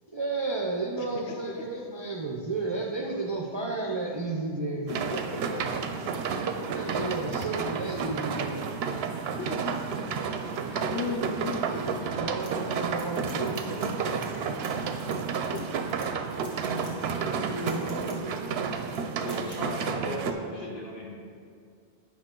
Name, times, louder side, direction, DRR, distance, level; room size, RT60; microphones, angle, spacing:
voice 1, 0.1-5.3 6.6-8.8 10.9-11.2 11.7-14.1 17.5-18.4, right 2 dB, 35° right, -3 dB, 0.5 m, -33 dB
voice 2, 1.0-1.4 4.9-5.7 9.4-9.8 10.3-10.4 10.7-11.7 12.8-12.9 15.5-15.7 16.0-16.1 16.7-17.4, left 5 dB, 75° left, 3 dB, 0.9 m, -37 dB
sound 1, 4.9-20.3, right 5 dB, 70° right, 0.8 m, -31 dB
sound 2, 12.4-14.3 14.5-16.9 17.3-18.2 18.9-19.0 19.3-19.6, equal, 10° left, 1.3 m, -50 dB
voice 3, 19.2-21.1, equal, 50° left, -3 dB, 1.6 m, -37 dB
8.9 x 5.5 x 3.8 m, 2.3 s
omnidirectional pair, 1.2 m